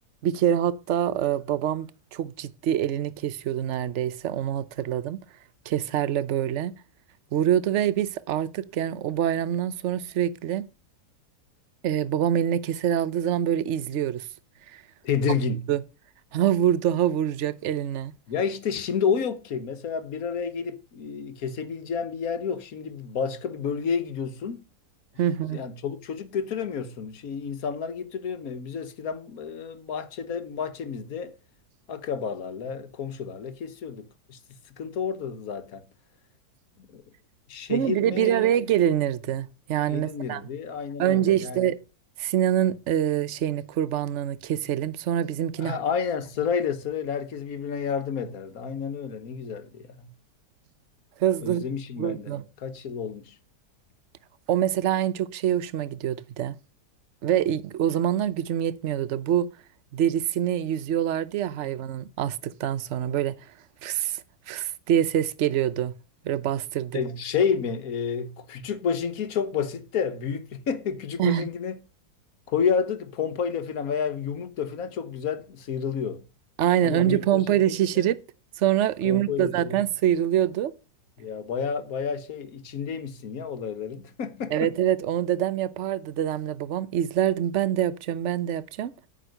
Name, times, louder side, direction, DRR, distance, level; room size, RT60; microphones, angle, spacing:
voice 1, 0.2-5.2 5.7-6.7 7.3-10.7 11.8-14.3 14.7-14.8 15.7-15.8 16.3-18.1 25.2-25.6 37.7-40.4 41.0-41.8 42.2-45.8 51.2-51.6 52.0-52.4 54.5-56.6 57.2-59.5 59.9-63.4 63.8-64.2 64.5-65.9 66.2-67.0 71.2-71.4 76.6-78.2 78.6-80.7 84.5-88.9, right 10 dB, 55° right, 0.9 m, -25 dB
voice 2, 15.0-15.7 18.3-24.6 25.3-31.3 31.9-34.4 34.8-35.8 36.8-37.0 37.5-38.6 39.9-41.7 45.6-50.1 51.4-53.4 66.9-71.8 72.5-76.2 76.8-77.6 77.9-78.1 79.0-79.8 81.2-84.7, left 6 dB, 60° left, 1.5 m, -30 dB
9.3 x 6.3 x 6.5 m
omnidirectional pair, 1.8 m